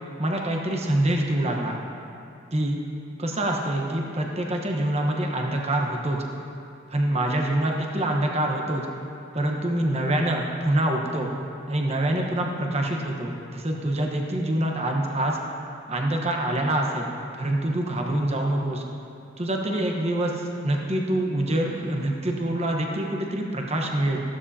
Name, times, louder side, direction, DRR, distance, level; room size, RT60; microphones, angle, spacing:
voice 1, 0.2-1.8 2.5-2.8 3.2-6.2 6.9-8.8 9.3-11.3 11.7-15.4 15.9-17.1 17.4-18.8 19.4-24.2, right 1 dB, 30° right, 1 dB, 1.2 m, -25 dB
15.5 x 12.5 x 2.8 m, 2.7 s
head